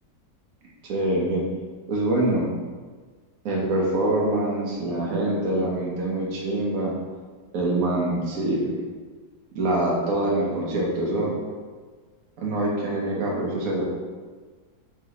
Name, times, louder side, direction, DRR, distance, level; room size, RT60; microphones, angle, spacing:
voice 1, 0.8-1.4 1.9-2.5 3.4-6.9 7.5-8.7 9.5-11.3 12.4-13.8, right 1 dB, 60° right, -3 dB, 1.3 m, -24 dB
4.5 x 3.1 x 2.9 m, 1.5 s
omnidirectional pair, 1.8 m